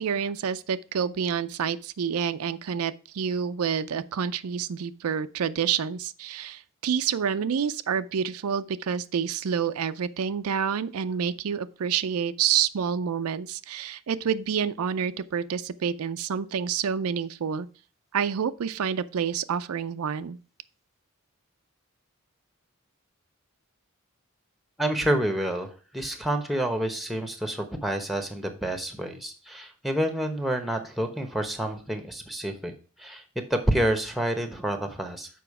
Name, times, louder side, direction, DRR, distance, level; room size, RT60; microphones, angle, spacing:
voice 1, 0.0-17.7 18.1-20.4, right 7 dB, 80° right, 0.4 m, -28 dB
voice 2, 24.8-32.7 33.0-33.2 33.5-35.3, right 1 dB, ahead, 1.0 m, -28 dB
6.9 x 4.9 x 4.8 m
head